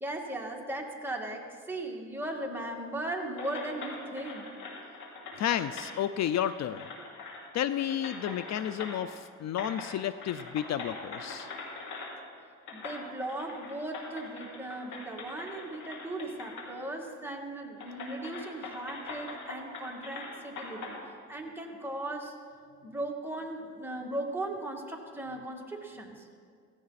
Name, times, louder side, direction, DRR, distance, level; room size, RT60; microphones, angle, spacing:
voice 1, 0.0-4.5 12.7-21.0 21.3-22.4 22.8-26.3, right 1 dB, 5° right, -1 dB, 2.3 m, -37 dB
sound 1, 3.4-5.9 6.2-7.5 7.8-9.2 9.5-9.9 10.2-12.1 12.7-16.7 17.1-17.2 17.8-20.9, left 4 dB, 85° left, 3.2 m, -42 dB
voice 2, 5.4-6.8 7.5-11.5, left 10 dB, 60° left, 13 dB, 0.5 m, -31 dB
16.5 x 16.0 x 4.2 m, 2.1 s
cardioid pair, 90°, 30 cm